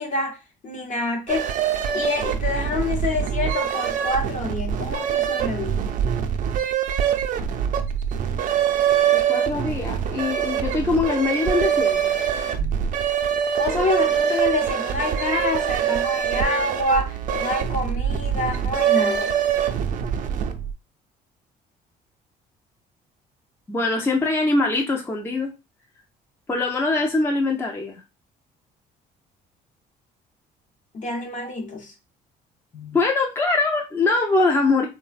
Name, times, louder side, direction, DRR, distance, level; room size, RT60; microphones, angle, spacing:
voice 1, 0.0-1.5 1.9-5.9 13.6-19.4 30.9-31.9, left 2 dB, 45° left, 0.8 m, -27 dB
sound 1, 1.3-20.7, right 9 dB, 50° right, 0.4 m, -24 dB
voice 2, 9.1-12.1 12.6-12.8 23.7-25.5 26.5-28.0 32.7-34.9, left 3 dB, 15° left, 0.4 m, -23 dB
3.2 x 2.1 x 2.4 m
cardioid pair, 110°, 17 cm